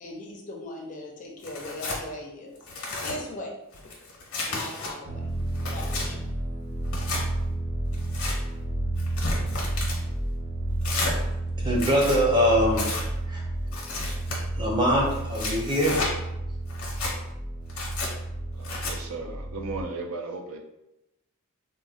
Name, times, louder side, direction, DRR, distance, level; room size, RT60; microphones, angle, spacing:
voice 1, 0.0-2.6 3.0-3.5 4.5-5.3 5.6-6.3, left 1 dB, 35° left, 0.5 m, -39 dB
Tearing, 1.4-2.0 2.6-3.2 3.7-4.9 5.4-6.1 6.8-7.2 7.9-8.4 9.0-10.0 10.8-11.2 11.7-12.2 12.7-13.0 13.7-14.4 15.1-16.1 16.7-17.1 17.7-18.1 18.6-18.9, left 3 dB, 80° left, 0.9 m, -32 dB
sound 1, 5.0-19.8, right 1 dB, 45° right, 1.1 m, -31 dB
voice 2, 11.6-12.9 13.3-13.4 14.5-16.0, equal, 20° right, 0.7 m, -23 dB
voice 3, 18.5-20.6, right 3 dB, 70° right, 0.5 m, -36 dB
3.8 x 2.1 x 2.4 m
head